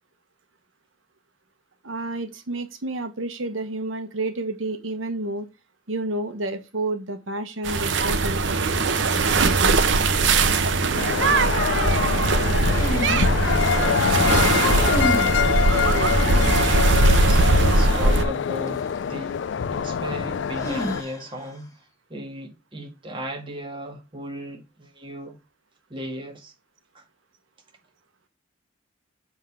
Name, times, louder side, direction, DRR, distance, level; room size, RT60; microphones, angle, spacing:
voice 1, 1.8-5.5 5.9-8.4, right 2 dB, 85° right, 1.1 m, -30 dB
sound 1, 7.6-18.2, right 3 dB, 65° right, 0.8 m, -20 dB
sound 2, 11.0-21.0, left 7 dB, 65° left, 0.4 m, -25 dB
sound 3, 12.7-13.9 14.4-15.3 15.8-16.7 18.7-18.8 20.6-21.4, equal, 15° left, 1.8 m, -30 dB
voice 2, 13.0-15.7 16.1-19.4 19.7-21.7 22.1-25.4 25.9-26.5 26.9-27.0, equal, 25° right, 1.7 m, -36 dB
7.2 x 3.6 x 5.5 m
head